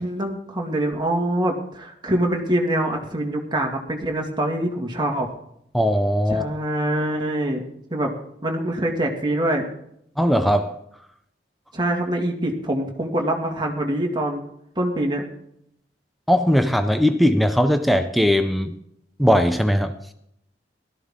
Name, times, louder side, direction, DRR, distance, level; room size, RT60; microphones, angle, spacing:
voice 1, 0.0-5.3 6.3-7.6 7.9-8.1 8.4-9.6 11.7-14.4 14.8-15.3, right 1 dB, 25° right, 2.1 m, -24 dB
voice 2, 5.7-6.5 10.2-10.8 16.3-18.7 19.2-19.9, equal, ahead, 0.6 m, -19 dB
17.0 x 13.0 x 3.7 m
head